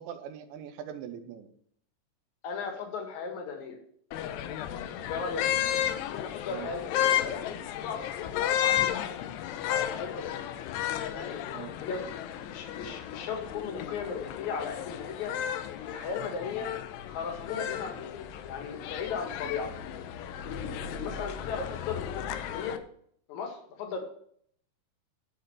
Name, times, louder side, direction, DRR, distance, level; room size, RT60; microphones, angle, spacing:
voice 1, 0.0-1.5 5.9-6.0 6.5-6.7 11.5-11.8 16.6-16.7 20.6-20.8, right 9 dB, 75° right, 7 dB, 3.1 m, -42 dB
voice 2, 2.4-3.8 4.9-5.5 6.2-9.2 9.6-10.5 11.1-11.4 11.8-15.3 15.7-16.7 17.1-19.7 20.3-22.8 23.3-24.0, left 5 dB, 55° left, 3 dB, 2.4 m, -37 dB
sound 1, 4.1-22.8, left 11 dB, 85° left, 2.4 m, -33 dB
12.0 x 4.2 x 7.9 m, 0.63 s
omnidirectional pair, 5.6 m